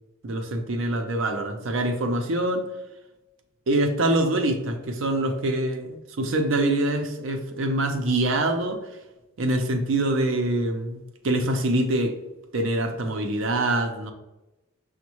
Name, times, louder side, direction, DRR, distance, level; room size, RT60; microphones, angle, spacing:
voice 1, 0.2-2.6 3.7-8.8 9.4-12.1 12.5-14.1, right 1 dB, 65° right, 5 dB, 0.5 m, -25 dB
6.1 x 2.1 x 2.9 m, 1.0 s
head